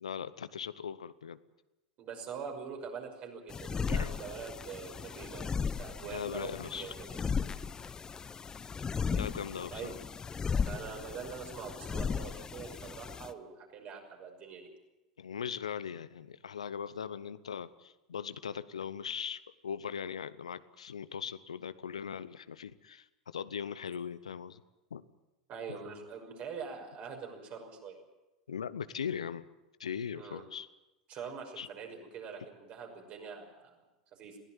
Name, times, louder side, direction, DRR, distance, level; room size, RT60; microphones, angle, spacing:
voice 1, 0.0-1.4 3.9-4.1 6.1-6.9 9.1-9.9 15.2-24.6 24.9-25.0 25.7-25.8 28.5-29.5 29.8-30.7 31.6-31.7, left 7 dB, 80° left, 15 dB, 0.9 m, -39 dB
voice 2, 2.0-7.2 9.7-9.9 10.6-14.7 25.5-28.0 30.1-30.4 31.1-33.8 34.1-34.4, right 6 dB, 45° right, 3 dB, 5.9 m, -44 dB
sound 1, 3.5-13.3, left 6 dB, 20° left, 0.9 m, -36 dB
21.5 x 16.5 x 9.1 m, 0.99 s
hypercardioid pair, 90°, 3 cm